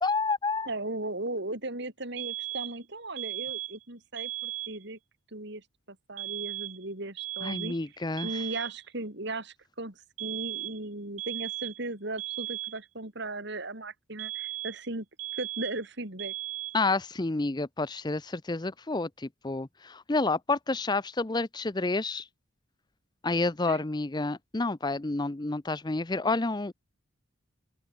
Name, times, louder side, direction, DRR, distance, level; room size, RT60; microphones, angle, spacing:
voice 1, 0.0-0.7 7.4-8.4 16.7-22.3 23.2-26.7, left 3 dB, 20° left, 0.6 m, -29 dB
voice 2, 0.7-5.0 5.3-7.7 8.2-15.0 15.3-16.3 23.7-23.8, right 2 dB, 55° right, 3.2 m, -37 dB
sound 1, 2.2-2.8 3.2-3.8 4.2-4.8 6.2-6.9 7.2-7.8 8.2-8.8 10.2-10.8 11.2-11.9 12.2-12.9 14.2-14.9 15.2-15.9 16.2-16.9, right 16 dB, 90° right, 1.6 m, -37 dB
open air
head